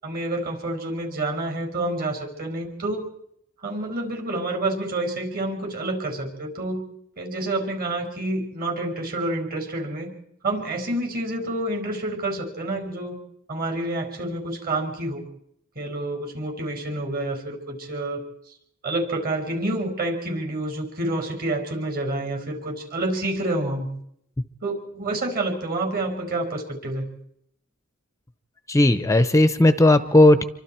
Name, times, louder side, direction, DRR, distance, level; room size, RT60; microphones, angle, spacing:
voice 1, 0.0-3.0 3.6-6.8 7.2-10.1 10.4-13.2 13.5-15.2 15.8-18.2 18.8-23.9 24.6-27.1, right 2 dB, 45° right, 4 dB, 5.6 m, -28 dB
voice 2, 28.7-30.4, left 1 dB, 15° left, 13 dB, 0.7 m, -16 dB
27.0 x 24.5 x 4.5 m, 0.72 s
head